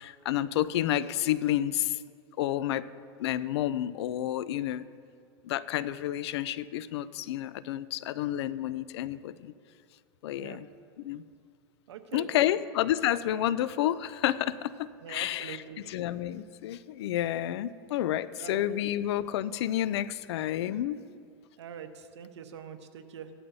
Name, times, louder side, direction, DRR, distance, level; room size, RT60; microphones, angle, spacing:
voice 1, 0.0-2.0 2.4-2.9 3.2-4.8 5.4-9.5 10.2-10.7 11.0-11.2 12.1-21.0, left 12 dB, 75° left, 16 dB, 0.5 m, -30 dB
voice 2, 11.9-12.5 15.0-15.8 18.4-18.7 21.6-23.3, right 8 dB, 90° right, 8 dB, 1.0 m, -43 dB
17.0 x 12.0 x 2.7 m, 2.2 s
supercardioid pair, 130°, 14 cm